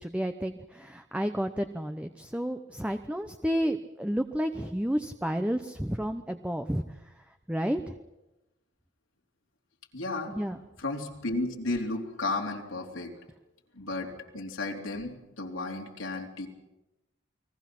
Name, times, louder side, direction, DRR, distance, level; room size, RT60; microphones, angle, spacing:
voice 1, 0.0-6.8 7.5-7.9 10.3-10.6, equal, 5° right, 7 dB, 0.8 m, -31 dB
voice 2, 9.9-10.3 10.8-13.2 13.8-14.1 14.3-16.5, left 2 dB, 90° left, 1 dB, 3.5 m, -33 dB
30.0 x 20.5 x 6.1 m, 1.0 s
head